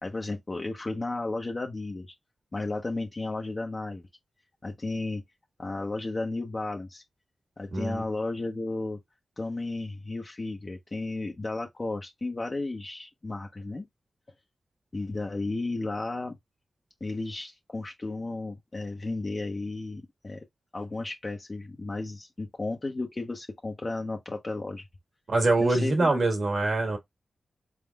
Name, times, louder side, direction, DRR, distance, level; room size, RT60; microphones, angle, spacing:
voice 1, 0.0-2.1 2.5-4.0 4.6-5.2 5.6-7.0 7.6-9.0 9.4-13.9 14.9-16.4 17.0-20.4 20.7-24.8 25.6-26.2, left 2 dB, 35° left, 0.7 m, -33 dB
voice 2, 7.7-8.0 25.3-27.0, right 2 dB, 60° right, 1.5 m, -24 dB
4.1 x 3.5 x 2.3 m
wide cardioid pair, 85°, 0 cm